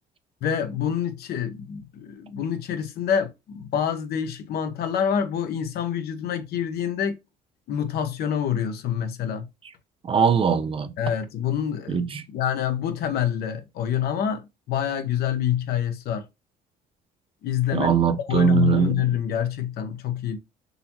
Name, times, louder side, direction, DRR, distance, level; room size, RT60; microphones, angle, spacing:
voice 1, 0.4-7.2 7.7-9.5 11.0-16.2 17.4-17.9 18.3-20.4, left 9 dB, 70° left, 0.9 m, -26 dB
voice 2, 10.0-10.9 11.9-12.2 17.7-18.9, right 6 dB, 30° right, 0.5 m, -21 dB
4.0 x 2.8 x 2.8 m
cardioid pair, 110°, 17 cm